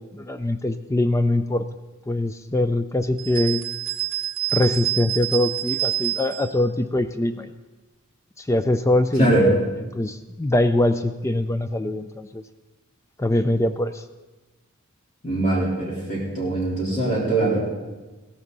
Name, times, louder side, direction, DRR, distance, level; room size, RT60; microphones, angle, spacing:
voice 1, 0.0-1.7 2.1-3.6 4.5-7.5 8.4-12.4 13.2-14.0, left 1 dB, 15° left, 10 dB, 0.4 m, -23 dB
sound 1, 3.2-6.5, right 15 dB, 40° right, 2.4 m, -27 dB
voice 2, 15.2-17.6, right 2 dB, 35° left, -4 dB, 3.9 m, -22 dB
16.0 x 14.5 x 4.0 m, 1.2 s
head